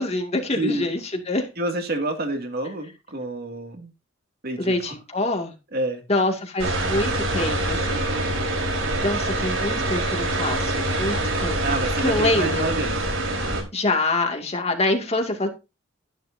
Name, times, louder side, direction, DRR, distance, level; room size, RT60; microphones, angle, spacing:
voice 1, 0.0-1.5 4.6-5.5 6.1-8.1 9.0-11.7 12.0-12.7 13.7-15.5, left 2 dB, 35° left, 2.3 m, -25 dB
voice 2, 0.5-0.9 1.6-3.9 4.4-4.9 5.7-6.0 11.6-13.0, right 2 dB, 50° right, 2.4 m, -28 dB
sound 1, 6.6-13.6, right 1 dB, 85° right, 4.6 m, -25 dB
12.5 x 11.5 x 2.8 m
head